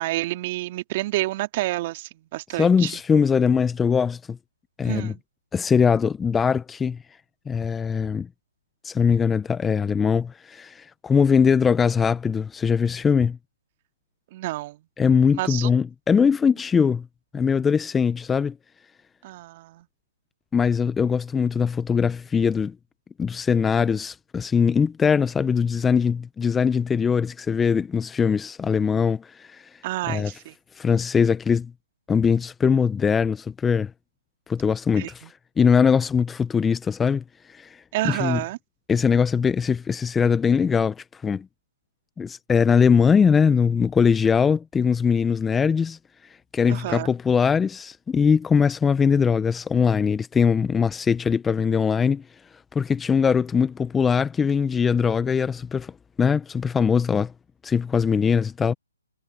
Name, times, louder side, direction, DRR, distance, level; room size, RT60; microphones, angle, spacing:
voice 1, 0.0-2.9 4.8-5.2 14.3-14.8 15.3-15.7 19.2-19.9 29.8-30.5 34.9-35.3 37.9-38.6 46.7-47.1, right 18 dB, 35° right, 2.1 m, -29 dB
voice 2, 2.6-4.4 4.8-5.1 5.5-7.0 7.5-8.3 8.8-13.4 15.0-17.0 17.3-18.5 20.5-22.7 23.2-29.7 30.1-30.3 30.8-31.7 32.1-33.9 34.5-35.2 35.6-37.8 38.0-38.4 38.9-41.5 42.2-46.0 46.5-52.2 52.7-55.9 56.2-57.3 57.6-58.7, left 6 dB, 10° left, 0.8 m, -21 dB
hypercardioid pair, 145°, 0 cm